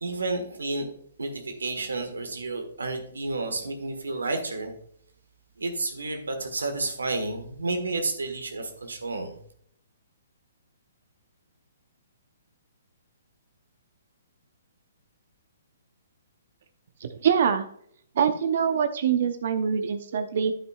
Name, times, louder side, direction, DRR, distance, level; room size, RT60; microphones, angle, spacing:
voice 1, 0.0-0.9 1.2-4.7 5.6-9.3, right 3 dB, 90° right, 5 dB, 1.5 m, -31 dB
voice 2, 17.0-17.7 18.1-20.5, right 7 dB, 60° right, 8 dB, 0.8 m, -24 dB
9.1 x 8.1 x 2.4 m, 0.65 s
hypercardioid pair, 135°, 0 cm